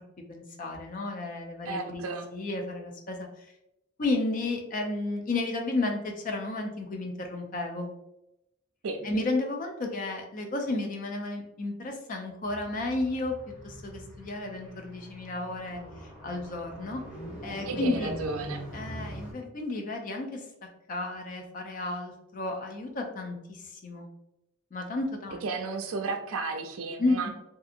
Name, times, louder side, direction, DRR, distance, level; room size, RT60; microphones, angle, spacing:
voice 1, 0.3-2.0 2.3-3.3 4.0-7.9 9.0-13.3 13.6-15.8 16.2-17.0 17.4-18.1 18.7-20.4 20.9-24.1 24.7-25.4 27.0-27.3, left 2 dB, 40° left, 3 dB, 0.4 m, -32 dB
voice 2, 1.6-2.3 8.8-9.1 17.6-18.6 25.4-27.3, right 3 dB, 75° right, 5 dB, 0.4 m, -33 dB
Car, 12.4-19.3, equal, 5° right, 1.0 m, -42 dB
2.8 x 2.4 x 2.5 m, 0.87 s
head